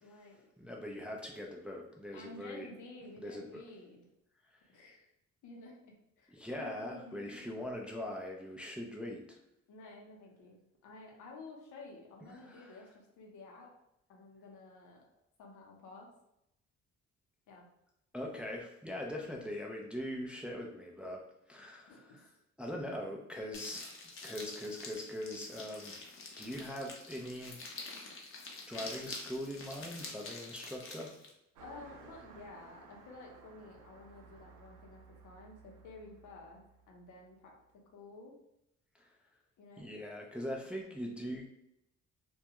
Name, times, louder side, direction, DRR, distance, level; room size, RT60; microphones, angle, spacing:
voice 1, 0.0-0.4 2.1-4.0 4.7-5.1 5.4-7.6 9.7-10.6 10.8-13.7 14.1-15.1 15.4-16.1 17.5-17.7 21.9-22.3 22.7-22.8 31.6-38.4 39.6-39.9, left 2 dB, 80° left, -1 dB, 0.8 m, -52 dB
voice 2, 0.6-2.7 3.2-3.6 6.3-9.4 12.2-12.8 18.1-22.3 22.6-27.7 28.7-31.2 38.9-39.1 39.8-41.5, left 1 dB, 5° right, -1 dB, 0.3 m, -42 dB
sound 1, 23.5-31.3, left 3 dB, 45° left, 0.6 m, -47 dB
Car passing by, 31.5-37.4, right 4 dB, 85° right, 0.5 m, -57 dB
2.2 x 2.2 x 2.8 m, 0.82 s
cardioid pair, 90°, 30 cm